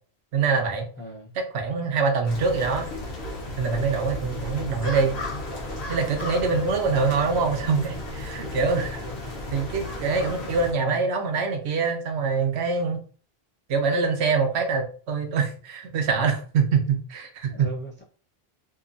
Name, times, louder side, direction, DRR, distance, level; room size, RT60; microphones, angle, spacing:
voice 1, 0.3-0.9 1.3-2.9 3.6-5.2 5.9-9.1 9.5-13.0 13.7-17.7, right 4 dB, 85° right, 4 dB, 0.9 m, -24 dB
voice 2, 1.0-1.3 6.5-6.6 8.5-8.8 10.8-11.1 17.5-18.0, equal, 15° left, -3 dB, 0.5 m, -37 dB
sound 1, 2.2-10.7, left 2 dB, 80° left, 1.1 m, -34 dB
2.8 x 2.5 x 2.5 m, 0.41 s
omnidirectional pair, 1.1 m